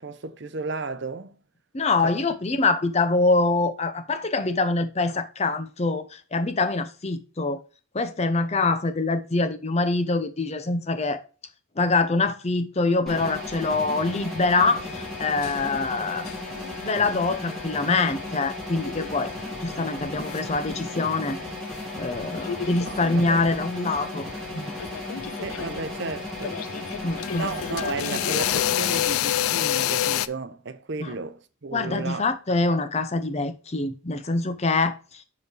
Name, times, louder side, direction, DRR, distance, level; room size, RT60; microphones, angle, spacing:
voice 1, 0.0-1.3 2.0-2.1 22.9-23.4 25.4-26.6 27.4-32.2, right 4 dB, 55° right, 0.7 m, -33 dB
voice 2, 1.7-7.6 7.9-11.2 11.8-16.3 16.8-19.3 19.6-21.4 22.0-24.3 24.5-24.7 27.0-27.5 31.0-31.1 31.7-35.2, left 3 dB, 30° left, 0.6 m, -25 dB
sound 1, 13.1-29.1, left 2 dB, ahead, 2.0 m, -35 dB
sound 2, 14.8-21.9 22.2-23.5 24.4-24.5 24.8-30.3, left 11 dB, 85° left, 0.3 m, -30 dB
5.2 x 4.8 x 4.7 m
head